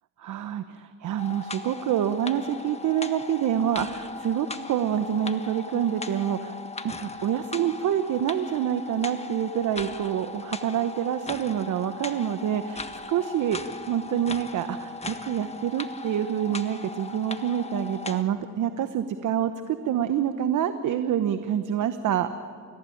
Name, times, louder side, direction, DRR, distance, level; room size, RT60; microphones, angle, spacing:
voice 1, 0.2-6.5 6.8-22.3, right 9 dB, 75° right, 10 dB, 1.0 m, -27 dB
sound 1, 1.2-18.2, left 3 dB, 20° left, 1.4 m, -38 dB
29.5 x 15.0 x 8.7 m, 2.4 s
cardioid pair, 85°, 31 cm